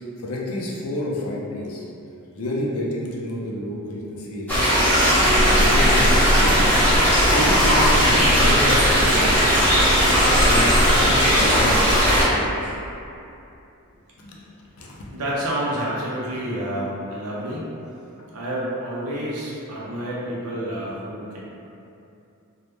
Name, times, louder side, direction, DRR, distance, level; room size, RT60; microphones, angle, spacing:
voice 1, 0.0-1.8 2.3-4.8 5.3-6.8 7.3-9.6 10.2-12.8 14.2-14.4 14.8-15.0, left 1 dB, 65° left, -4 dB, 0.4 m, -29 dB
sound 1, 4.5-12.2, equal, 10° left, 0.6 m, -17 dB
voice 2, 15.1-17.7 18.3-21.4, right 1 dB, 90° right, -6 dB, 0.6 m, -29 dB
2.1 x 2.1 x 2.9 m, 2.7 s
head